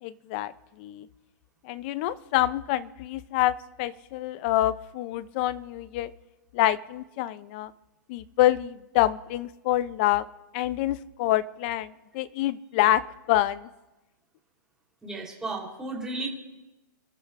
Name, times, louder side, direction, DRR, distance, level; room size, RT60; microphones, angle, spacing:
voice 1, 0.0-0.5 0.8-1.1 1.6-6.1 6.5-7.7 8.1-10.3 10.5-13.0 13.3-13.7, left 14 dB, 30° left, 17 dB, 0.5 m, -26 dB
voice 2, 15.0-16.3, right 2 dB, 5° right, -3 dB, 3.5 m, -34 dB
28.5 x 12.5 x 2.5 m, 1.0 s
hypercardioid pair, 160°, 11 cm